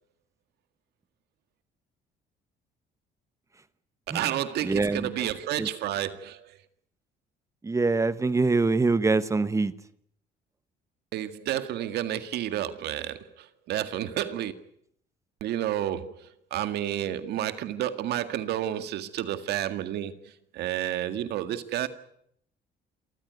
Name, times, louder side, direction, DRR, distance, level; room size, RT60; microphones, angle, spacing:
voice 1, 4.1-6.6 11.1-14.5 15.4-21.9, right 12 dB, 75° right, 1.9 m, -31 dB
voice 2, 4.6-5.1 5.6-5.7 7.6-9.7, right 3 dB, 20° right, 1.1 m, -24 dB
28.0 x 14.5 x 9.4 m
cardioid pair, 110°, 17 cm